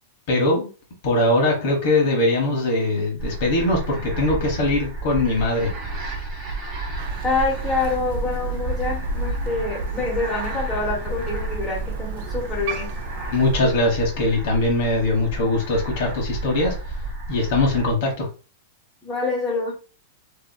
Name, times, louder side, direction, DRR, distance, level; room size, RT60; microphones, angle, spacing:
voice 1, 0.3-0.7 1.0-5.7 13.3-16.7 17.3-18.3, left 2 dB, 60° left, 0 dB, 1.1 m, -21 dB
sound 1, 3.2-17.9, right 2 dB, 25° right, 1.0 m, -32 dB
Crow, 7.0-13.6, right 3 dB, 60° right, 0.5 m, -32 dB
voice 2, 7.2-12.9 19.0-19.7, left 3 dB, 15° left, -4 dB, 1.2 m, -26 dB
2.7 x 2.7 x 2.2 m, 0.35 s
hypercardioid pair, 120°, 0 cm